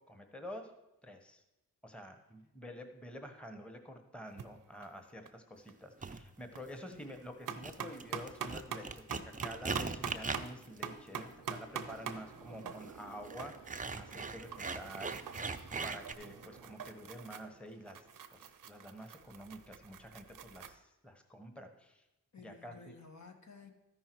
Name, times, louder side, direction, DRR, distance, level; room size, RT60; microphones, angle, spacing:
voice 1, 0.1-0.7 1.0-1.4 1.8-18.1 18.3-22.1 22.4-23.0, equal, 5° left, 6 dB, 1.1 m, -49 dB
sound 1, 4.3-4.5 4.8-5.4 5.7-5.8 6.1-6.6 7.0-20.8, right 7 dB, 70° right, 0.8 m, -45 dB
sound 2, 6.0-6.2 6.9-7.3 7.6-16.1, right 4 dB, 25° right, 0.6 m, -41 dB
voice 2, 12.5-12.8 22.3-23.7, left 4 dB, 50° left, 3 dB, 1.4 m, -55 dB
13.0 x 5.6 x 4.6 m, 0.99 s
cardioid pair, 55°, 35 cm